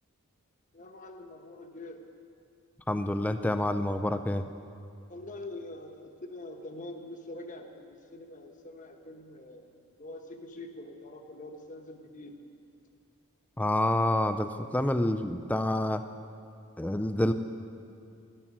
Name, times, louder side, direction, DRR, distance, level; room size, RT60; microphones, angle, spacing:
voice 1, 0.7-2.0 5.1-12.4, left 2 dB, 35° left, 4 dB, 1.0 m, -44 dB
voice 2, 2.9-4.4 13.6-16.0 16.8-17.3, left 1 dB, 5° left, 9 dB, 0.3 m, -28 dB
12.0 x 11.0 x 6.0 m, 2.5 s
head